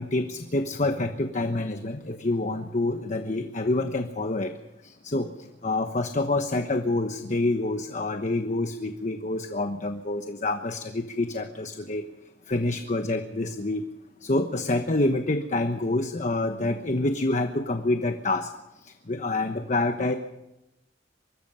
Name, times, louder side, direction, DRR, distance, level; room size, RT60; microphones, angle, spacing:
voice 1, 0.0-4.5 4.8-5.3 5.6-12.0 12.5-13.8 14.2-18.5 18.8-20.1, left 2 dB, 40° left, 7 dB, 1.1 m, -27 dB
25.0 x 21.0 x 5.6 m, 0.93 s
head